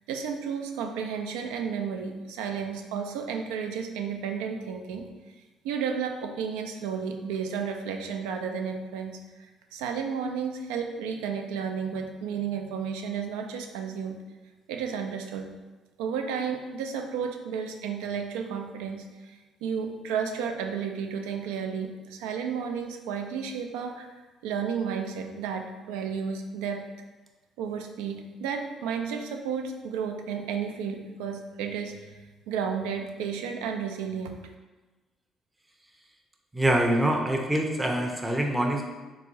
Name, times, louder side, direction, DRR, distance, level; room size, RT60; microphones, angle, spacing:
voice 1, 0.1-5.1 5.6-14.2 14.7-15.5 16.0-24.1 24.4-26.8 27.6-32.2 32.5-34.4, right 6 dB, 80° right, 4 dB, 0.3 m, -32 dB
voice 2, 36.5-38.8, right 1 dB, 15° right, 1 dB, 0.5 m, -25 dB
3.6 x 3.0 x 2.6 m, 1.2 s
hypercardioid pair, 50°, 0 cm